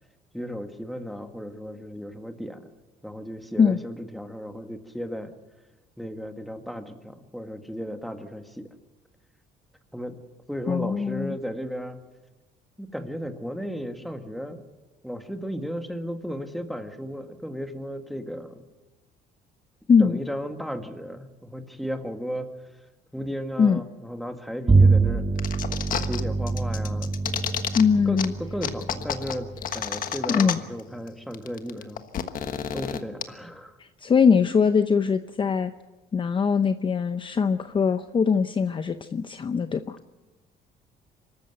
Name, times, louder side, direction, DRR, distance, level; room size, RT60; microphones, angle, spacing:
voice 1, 0.3-2.7 3.0-5.3 6.0-8.7 9.9-10.2 10.5-12.0 12.8-14.6 15.0-18.6 20.0-22.5 23.1-25.3 26.0-27.1 28.1-29.5 29.7-32.0 32.7-33.8, equal, ahead, 6 dB, 1.9 m, -35 dB
voice 2, 10.7-11.4 19.9-20.2 23.6-23.8 27.7-28.3 30.3-30.6 33.8-35.7 36.1-40.0, left 6 dB, 30° left, 10 dB, 0.7 m, -22 dB
Bowed string instrument, 24.7-30.3, right 3 dB, 20° right, 1.4 m, -25 dB
sound 1, 25.4-26.2 26.5-27.8 28.2-28.3 28.6-30.8 31.1-31.2 31.3-33.2, left 9 dB, 55° left, 1.4 m, -30 dB
24.5 x 13.5 x 8.0 m, 1.1 s
cardioid pair, 110°, 17 cm